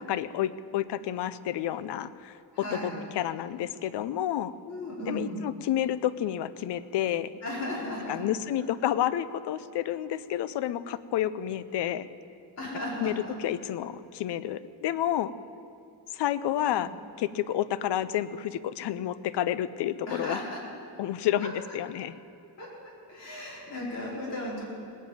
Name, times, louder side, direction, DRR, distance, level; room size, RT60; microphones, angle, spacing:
voice 1, 0.1-2.3 2.7-4.5 5.1-7.3 8.1-12.1 13.0-15.3 16.1-16.9 17.2-20.4 21.0-22.1, left 11 dB, 75° left, 15 dB, 0.7 m, -30 dB
voice 2, 2.5-2.9 4.6-5.3 7.4-8.2 12.6-13.1 16.7-16.8 20.1-20.6 21.4-21.5 22.6-22.7 23.1-24.6, left 1 dB, 35° left, -6 dB, 4.8 m, -35 dB
19.0 x 7.4 x 8.8 m, 2.6 s
cardioid pair, 160°, 42 cm